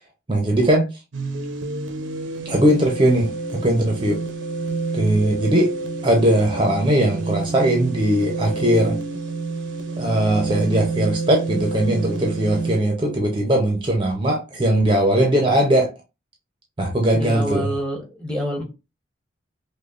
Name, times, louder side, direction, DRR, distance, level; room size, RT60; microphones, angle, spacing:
voice 1, 0.3-0.9 2.5-4.2 4.9-5.7 6.0-9.0 10.0-15.9 16.8-17.7, right 1 dB, 25° right, 0.6 m, -19 dB
sound 1, 1.1-12.8, right 3 dB, 80° right, 0.6 m, -28 dB
voice 2, 17.1-18.6, equal, 5° left, 1.0 m, -27 dB
5.1 x 2.2 x 2.4 m
head